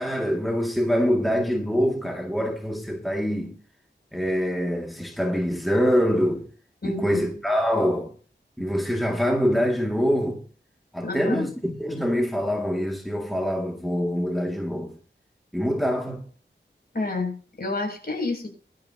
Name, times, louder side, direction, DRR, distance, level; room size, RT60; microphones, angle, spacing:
voice 1, 0.0-3.6 4.1-6.5 6.8-8.1 8.6-10.4 10.9-14.9 15.5-16.3, equal, ahead, 2.5 m, -24 dB
voice 2, 6.8-7.2 11.0-11.5 16.9-18.5, left 2 dB, 50° left, 7.4 m, -29 dB
23.5 x 12.5 x 3.0 m
wide cardioid pair, 80°, 20 cm